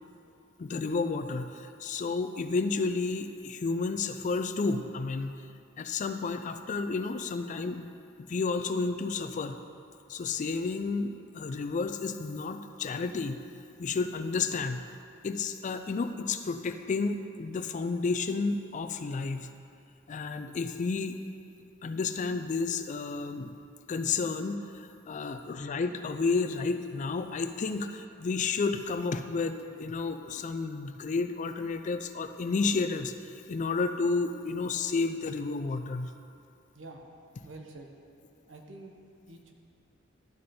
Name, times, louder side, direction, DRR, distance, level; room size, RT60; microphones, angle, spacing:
voice 1, 0.6-5.4 5.8-7.9 8.2-9.6 10.1-13.4 13.8-14.9 15.2-19.5 20.1-21.2 21.8-23.6 23.9-36.1, left 4 dB, 40° left, 9 dB, 0.4 m, -31 dB
voice 2, 36.7-37.1 37.4-37.9 38.5-38.9 39.3-39.5, right 2 dB, 75° right, 2 dB, 0.9 m, -47 dB
11.0 x 5.3 x 4.3 m, 2.5 s
head